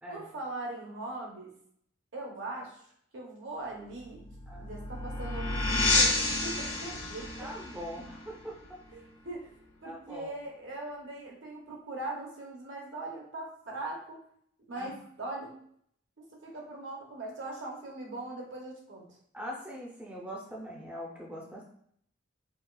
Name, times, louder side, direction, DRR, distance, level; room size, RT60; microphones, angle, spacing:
voice 1, 0.1-1.5 2.1-2.8 3.1-4.3 4.6-7.5 8.9-9.5 9.8-14.2 14.7-15.6 16.2-19.1, right 2 dB, 65° right, -1 dB, 0.8 m, -40 dB
sound 1, 3.9-9.3, left 2 dB, 85° left, 0.9 m, -31 dB
voice 2, 7.4-9.0 9.8-10.3 14.8-14.9 19.3-21.7, equal, 10° right, -3 dB, 0.5 m, -42 dB
4.2 x 2.3 x 2.2 m, 0.66 s
head